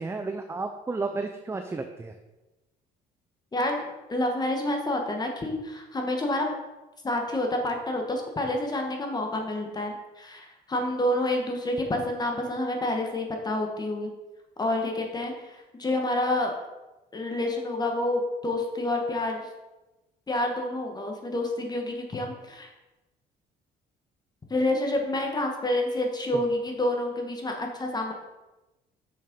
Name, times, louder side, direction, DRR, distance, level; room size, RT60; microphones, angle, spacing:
voice 1, 0.0-2.2, right 3 dB, 15° right, 6 dB, 0.6 m, -32 dB
voice 2, 3.5-6.5 7.0-14.1 14.6-16.5 17.1-19.5 20.3-22.7 24.5-28.1, left 1 dB, 25° left, 2 dB, 1.4 m, -28 dB
6.6 x 6.5 x 5.3 m, 1.0 s
cardioid pair, 110°, 17 cm